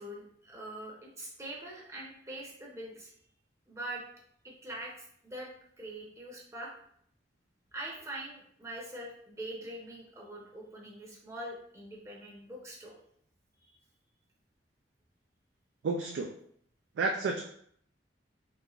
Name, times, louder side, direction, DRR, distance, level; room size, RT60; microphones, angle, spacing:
voice 1, 0.0-3.1 3.7-4.0 4.4-5.5 5.8-6.7 7.7-13.0 13.6-13.8, right 1 dB, 15° right, -3 dB, 0.8 m, -43 dB
voice 2, 15.8-16.4 17.0-17.4, right 3 dB, 85° right, 2 dB, 0.3 m, -31 dB
3.4 x 3.1 x 2.4 m, 0.66 s
head